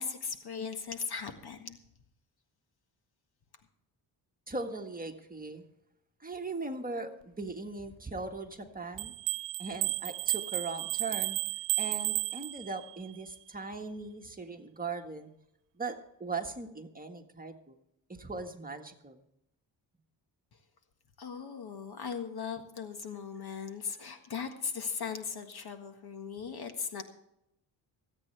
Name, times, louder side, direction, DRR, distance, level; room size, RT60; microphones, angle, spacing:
voice 1, 0.0-1.8 21.2-27.0, left 6 dB, 60° left, 7 dB, 1.7 m, -38 dB
voice 2, 4.5-5.6 6.2-9.1 9.6-11.4 11.8-15.3 15.7-17.7 18.1-19.2, right 3 dB, 20° right, 4 dB, 1.6 m, -39 dB
sound 1, 9.0-13.0, right 17 dB, 75° right, 0.5 m, -33 dB
23.5 x 8.8 x 3.4 m, 0.81 s
cardioid pair, 80°, 44 cm